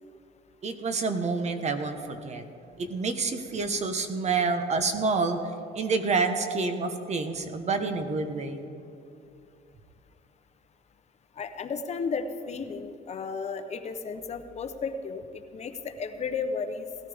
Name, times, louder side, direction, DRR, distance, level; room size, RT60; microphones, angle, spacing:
voice 1, 0.6-2.4 2.8-5.4 5.7-8.7, right 4 dB, 40° right, 7 dB, 1.3 m, -28 dB
voice 2, 11.4-16.9, left 5 dB, 40° left, 8 dB, 0.9 m, -34 dB
18.5 x 13.5 x 3.6 m, 2.6 s
cardioid pair, 110°, 17 cm